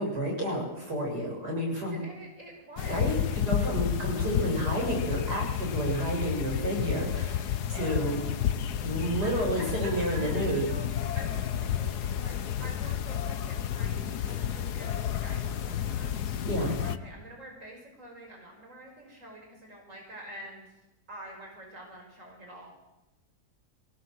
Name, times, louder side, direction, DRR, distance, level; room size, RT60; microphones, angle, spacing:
voice 1, 0.0-2.0 2.9-3.2 3.4-8.2 8.8-10.7 14.3-14.4 16.4-16.8, right 1 dB, 85° right, 0 dB, 7.4 m, -30 dB
voice 2, 1.9-3.1 3.3-3.4 9.2-10.9 11.1-16.2 16.6-20.7 21.1-22.7, right 1 dB, 50° right, 0 dB, 6.1 m, -47 dB
sound 1, 2.8-17.0, left 9 dB, 80° left, 1.5 m, -31 dB
24.0 x 19.0 x 7.7 m, 0.98 s
omnidirectional pair, 1.7 m